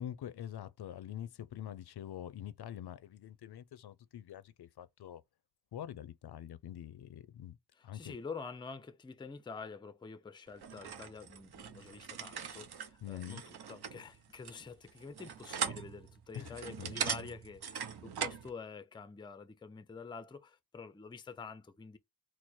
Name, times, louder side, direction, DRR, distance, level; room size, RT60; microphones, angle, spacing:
voice 1, 0.0-5.2 5.7-7.6 7.8-8.2 13.0-13.4 16.3-17.1, left 10 dB, 75° left, 0.5 m, -45 dB
voice 2, 7.7-22.0, left 5 dB, 10° left, 0.4 m, -47 dB
sound 1, 10.6-18.5, right 7 dB, 65° right, 0.8 m, -41 dB
4.5 x 2.0 x 4.2 m
wide cardioid pair, 95°, 40 cm